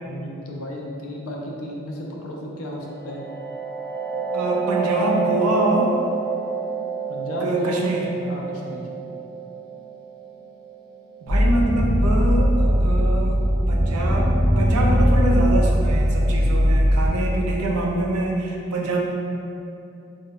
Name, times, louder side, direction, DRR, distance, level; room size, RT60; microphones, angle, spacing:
voice 1, 0.0-3.2 7.1-7.9 8.2-8.9, left 1 dB, 75° left, -1 dB, 0.5 m, -33 dB
sound 1, 2.7-12.2, right 5 dB, 20° right, 0.4 m, -30 dB
voice 2, 4.3-5.9 7.4-8.1 11.2-13.4 13.7-19.0, right 2 dB, 85° right, -1 dB, 0.4 m, -24 dB
sound 2, 11.3-17.1, equal, 55° right, 0.8 m, -19 dB
2.6 x 2.2 x 3.4 m, 2.7 s
head